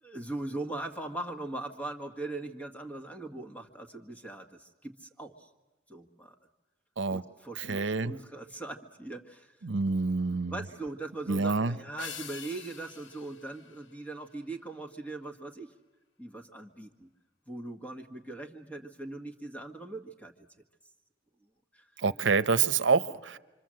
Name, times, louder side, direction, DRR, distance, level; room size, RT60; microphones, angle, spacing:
voice 1, 0.0-5.5 5.9-6.4 7.1-9.6 10.5-15.7 16.2-17.1 17.5-20.3 21.7-21.8, right 2 dB, 10° left, 4 dB, 1.6 m, -40 dB
voice 2, 7.6-8.1 9.6-10.6 11.3-11.8 22.0-23.4, right 4 dB, 80° right, 14 dB, 0.8 m, -27 dB
sound 1, 12.0-14.6, left 6 dB, 80° left, 1.0 m, -46 dB
27.0 x 25.0 x 7.7 m, 1.1 s
head